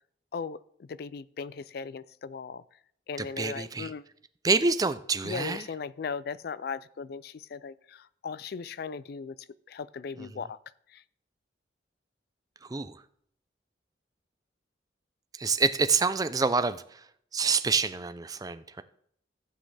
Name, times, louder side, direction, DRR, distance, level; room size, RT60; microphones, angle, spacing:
voice 1, 0.3-2.6 3.1-4.1 5.2-9.4 9.7-10.6 10.9-11.0, left 5 dB, 55° left, 18 dB, 0.4 m, -38 dB
voice 2, 3.2-3.9 4.4-5.6 10.2-10.3 12.6-13.0 15.3-17.1 17.3-18.8, right 4 dB, 20° right, 12 dB, 0.4 m, -27 dB
15.0 x 7.6 x 3.4 m, 0.67 s
head